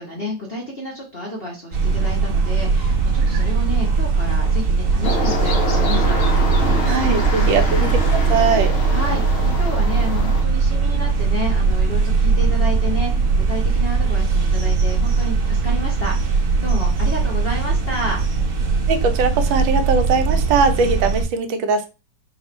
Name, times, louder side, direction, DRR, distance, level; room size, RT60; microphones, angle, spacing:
voice 1, 0.0-7.6 8.9-13.1 13.4-18.2, equal, 45° left, -1 dB, 0.8 m, -30 dB
sound 1, 1.7-21.2, right 4 dB, 55° right, 1.0 m, -19 dB
sound 2, 5.0-10.4, left 2 dB, 65° left, 0.5 m, -26 dB
voice 2, 6.9-8.7 18.9-21.9, right 5 dB, 80° right, 7 dB, 1.4 m, -20 dB
4.2 x 2.3 x 4.2 m, 0.29 s
omnidirectional pair, 2.1 m